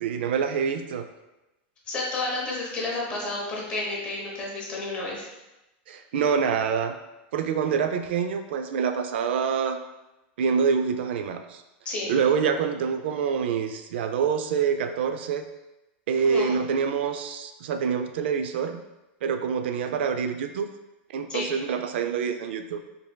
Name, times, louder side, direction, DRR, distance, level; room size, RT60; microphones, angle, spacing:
voice 1, 0.0-1.1 5.9-6.9 7.3-9.8 10.4-11.6 12.1-15.4 16.1-18.8 19.2-20.7 21.1-22.8, right 6 dB, 80° right, 8 dB, 0.3 m, -26 dB
voice 2, 1.9-5.3 11.8-12.1 16.2-16.5 21.3-21.5, left 2 dB, 20° left, -4 dB, 0.8 m, -31 dB
4.3 x 3.4 x 2.2 m, 0.98 s
supercardioid pair, 180°, 6 cm